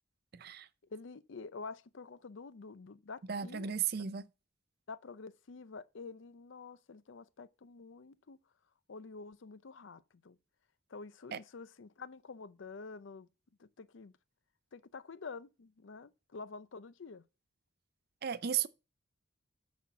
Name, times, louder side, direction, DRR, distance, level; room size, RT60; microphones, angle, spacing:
voice 1, 0.3-0.7 3.3-4.2 11.3-11.4 18.2-18.7, right 8 dB, 50° right, 0.5 m, -34 dB
voice 2, 0.9-4.1 4.9-8.4 8.9-10.4 10.9-13.3 13.6-14.2 14.7-17.2, left 4 dB, 70° left, 0.6 m, -48 dB
9.8 x 4.3 x 5.9 m
head